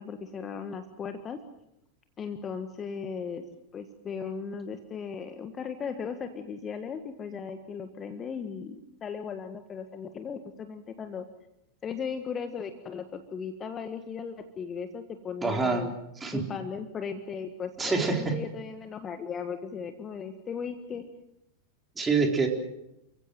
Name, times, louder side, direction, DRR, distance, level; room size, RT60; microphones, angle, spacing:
voice 1, 0.0-1.4 2.2-3.4 3.7-11.2 11.8-15.9 16.3-21.0, left 6 dB, 25° left, 9 dB, 1.6 m, -37 dB
voice 2, 15.4-15.9 16.2-16.4 17.8-18.2 22.0-22.5, right 4 dB, 15° right, 3 dB, 4.2 m, -26 dB
29.0 x 16.0 x 7.8 m, 0.85 s
figure-of-eight pair, 90°, 0 cm